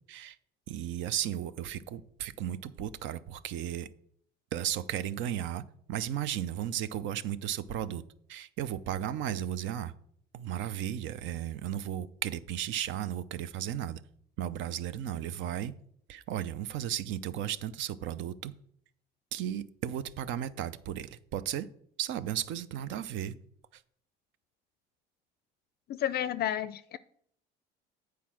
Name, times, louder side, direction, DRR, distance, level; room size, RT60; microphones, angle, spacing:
voice 1, 0.7-3.9 4.5-8.0 8.3-9.9 10.3-14.0 14.4-15.7 16.1-18.5 19.3-21.7 22.0-23.4 23.7-23.8, right 11 dB, 65° right, 0.6 m, -35 dB
voice 2, 25.9-27.0, left 11 dB, 50° left, 0.4 m, -31 dB
8.4 x 4.7 x 6.1 m
supercardioid pair, 85°, 21 cm